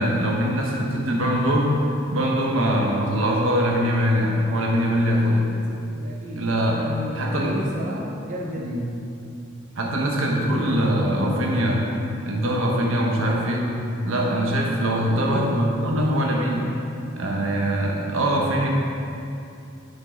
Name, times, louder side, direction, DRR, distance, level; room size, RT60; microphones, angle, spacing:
voice 1, 0.0-1.8 2.1-5.4 6.4-6.9 7.1-7.6 7.9-8.0 8.5-8.9 9.8-11.8 12.2-13.7 14.0-16.7 17.2-18.7, equal, 75° right, -1 dB, 1.2 m, -22 dB
voice 2, 5.1-5.5 5.9-8.8 15.1-15.6, equal, 35° right, -4 dB, 0.9 m, -33 dB
10.0 x 5.4 x 3.9 m, 2.6 s
head